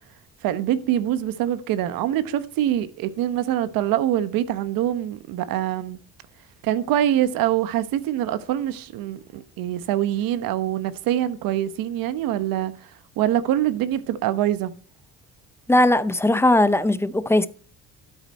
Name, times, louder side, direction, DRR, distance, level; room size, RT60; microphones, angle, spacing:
voice 1, 0.4-6.0 6.6-12.7 13.2-14.7, right 12 dB, 90° right, 1.1 m, -24 dB
voice 2, 15.7-17.5, left 1 dB, 10° left, 0.6 m, -18 dB
13.0 x 8.1 x 4.2 m
cardioid pair, 130°, 33 cm